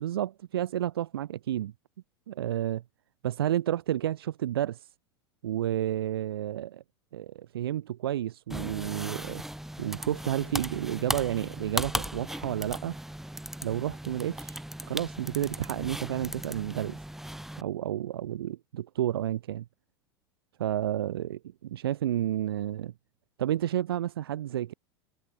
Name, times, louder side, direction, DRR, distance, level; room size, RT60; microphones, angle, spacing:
voice 1, 0.0-1.7 2.3-2.8 3.2-4.9 5.4-6.8 7.1-9.4 9.8-13.0 13.6-17.0 17.6-19.7 20.6-22.9 23.4-24.7, right 12 dB, 65° right, 2.4 m, -31 dB
sound 1, 8.5-17.6, right 1 dB, 5° right, 3.3 m, -37 dB
figure-of-eight pair, 80°, 14 cm